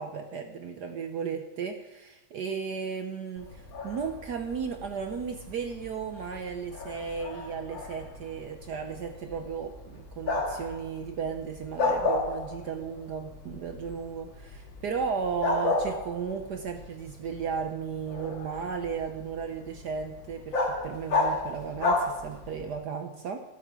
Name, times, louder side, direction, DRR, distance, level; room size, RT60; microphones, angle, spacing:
voice 1, 0.0-20.6 20.8-23.4, right 6 dB, 60° right, 6 dB, 1.2 m, -35 dB
Bark, 3.4-22.7, left 3 dB, 65° left, 2.8 m, -34 dB
13.5 x 12.5 x 4.8 m, 0.99 s
omnidirectional pair, 2.3 m